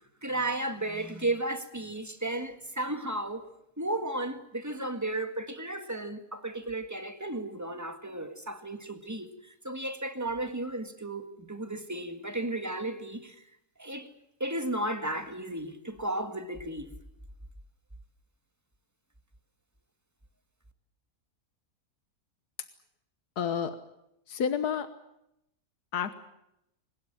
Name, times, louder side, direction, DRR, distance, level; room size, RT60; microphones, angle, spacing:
voice 1, 0.2-3.5 3.8-9.3 9.6-13.4 13.8-14.1 14.4-16.9, right 1 dB, 10° right, 8 dB, 1.8 m, -34 dB
voice 2, 23.4-23.8 24.3-24.9 25.9-26.1, left 7 dB, 90° left, 11 dB, 1.7 m, -29 dB
22.0 x 20.0 x 8.9 m, 0.81 s
omnidirectional pair, 1.6 m